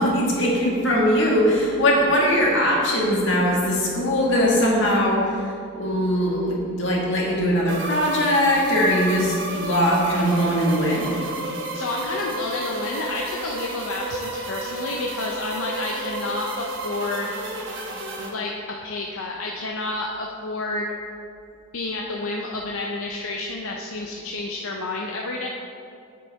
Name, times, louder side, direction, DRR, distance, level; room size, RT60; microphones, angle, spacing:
voice 1, 0.0-5.2 5.8-11.1, equal, 60° left, -3 dB, 1.8 m, -20 dB
sound 1, 7.7-18.3, right 2 dB, 60° right, 1.1 m, -32 dB
voice 2, 11.7-17.3 18.3-20.9 21.7-25.5, left 2 dB, 85° left, -1 dB, 0.6 m, -30 dB
8.1 x 7.9 x 3.6 m, 2.4 s
head